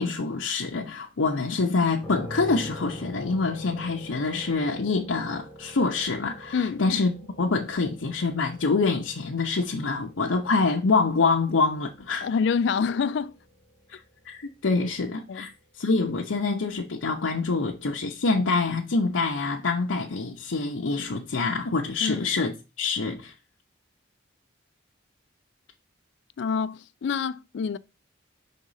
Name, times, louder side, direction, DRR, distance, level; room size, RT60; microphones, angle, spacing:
voice 1, 0.0-12.3 13.9-15.5 15.8-23.3, left 4 dB, 85° left, 0.7 m, -26 dB
sound 1, 2.0-15.8, equal, 5° left, 1.4 m, -45 dB
voice 2, 6.5-6.8 12.2-13.4 15.3-15.5 22.0-22.3 26.4-27.8, left 6 dB, 60° left, 0.3 m, -27 dB
5.1 x 3.7 x 5.5 m
head